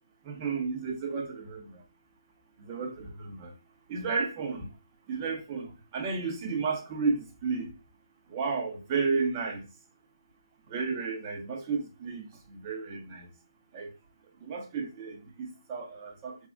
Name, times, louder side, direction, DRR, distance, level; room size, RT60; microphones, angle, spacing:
voice 1, 0.3-1.8 2.7-3.5 3.9-4.7 5.1-5.7 5.9-7.7 8.3-9.7 10.7-13.2 13.7-13.9 14.4-16.4, right 4 dB, 20° right, 0.6 m, -32 dB
3.3 x 2.0 x 2.5 m
figure-of-eight pair, 155°, 3 cm